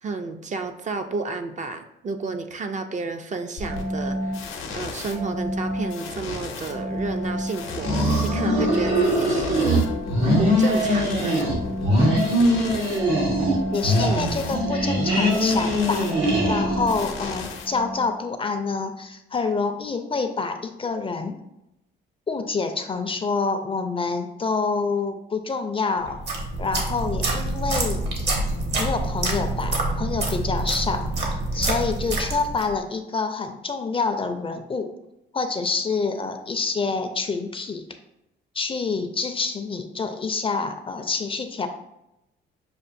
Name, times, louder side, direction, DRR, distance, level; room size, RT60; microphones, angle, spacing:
voice 1, 0.0-4.4 4.7-9.8 10.4-11.4 14.0-14.3, right 4 dB, 40° right, 6 dB, 0.4 m, -31 dB
sound 1, 3.6-18.2, left 1 dB, 85° left, 0.7 m, -31 dB
sound 2, 7.7-9.8 10.1-11.6 11.8-13.6 13.8-17.0, equal, 85° right, 1.3 m, -22 dB
voice 2, 13.7-21.4 22.3-26.2 26.6-28.0 28.8-31.1 31.5-34.9 35.3-37.9 38.5-41.7, left 4 dB, 25° left, 7 dB, 0.4 m, -27 dB
sound 3, 26.1-32.8, right 2 dB, 60° right, 1.1 m, -26 dB
6.5 x 2.5 x 2.5 m, 0.87 s
cardioid pair, 90°, 20 cm